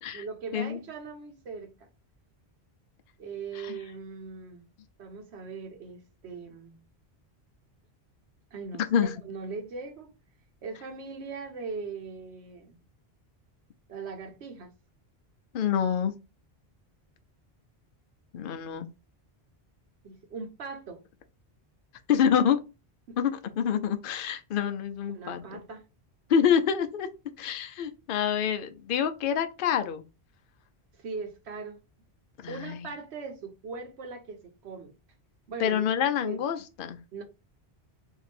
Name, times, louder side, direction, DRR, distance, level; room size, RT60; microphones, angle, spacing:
voice 1, 0.1-1.9 3.2-4.7 5.0-6.8 8.5-10.1 10.6-12.8 13.9-14.7 20.0-21.0 23.1-23.2 25.1-25.8 31.0-31.8 32.5-34.9 35.5-36.4 37.1-37.2, right 4 dB, 85° right, 1.1 m, -40 dB
voice 2, 15.5-16.1 18.3-18.9 22.1-22.6 23.2-25.6 26.3-27.1 27.4-30.0 32.4-32.8 35.6-37.0, left 8 dB, 60° left, 0.7 m, -27 dB
2.8 x 2.6 x 4.1 m
omnidirectional pair, 1.1 m